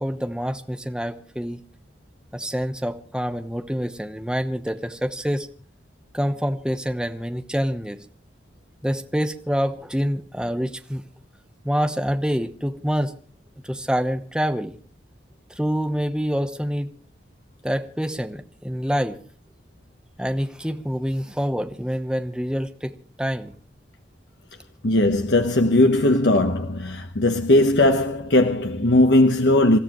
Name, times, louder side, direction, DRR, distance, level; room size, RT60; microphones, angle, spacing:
voice 1, 0.0-1.6 2.3-5.5 6.1-8.0 8.8-11.0 11.6-13.1 13.6-14.8 15.6-16.9 17.6-19.2 20.2-23.5, equal, 5° right, 0.9 m, -26 dB
voice 2, 24.8-29.8, left 1 dB, 75° left, 1.2 m, -18 dB
28.0 x 14.5 x 3.1 m
head